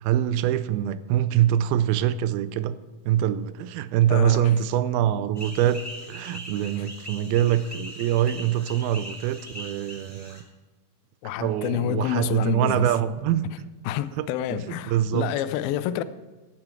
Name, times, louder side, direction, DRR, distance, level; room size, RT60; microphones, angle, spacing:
voice 1, 0.0-2.7 3.1-5.8 6.1-10.4 11.4-13.4 14.2-15.3, right 11 dB, 80° right, 2.4 m, -24 dB
voice 2, 4.1-4.6 6.8-6.9 11.2-12.9 13.8-16.0, left 11 dB, 80° left, 2.3 m, -28 dB
sound 1, 5.3-10.4, equal, 10° left, 1.0 m, -41 dB
16.5 x 8.9 x 4.6 m
omnidirectional pair, 4.4 m